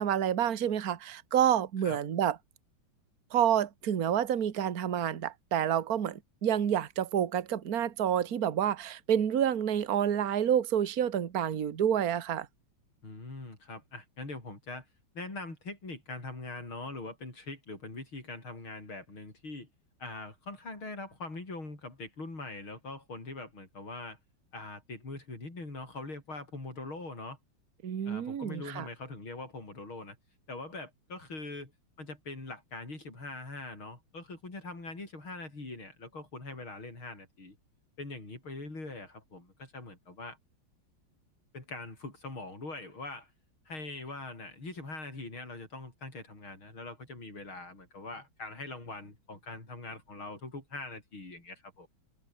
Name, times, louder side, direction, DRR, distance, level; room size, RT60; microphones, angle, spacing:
voice 1, 0.0-2.4 3.3-12.5 27.8-28.9, right 9 dB, 50° right, 1.8 m, -28 dB
voice 2, 13.0-14.9 15.1-19.7 20.0-24.2 24.5-27.4 28.0-30.2 30.5-31.7 32.0-37.6 38.0-40.4 41.5-43.3 43.7-51.9, left 2 dB, 90° left, 8.1 m, -42 dB
omnidirectional pair, 2.2 m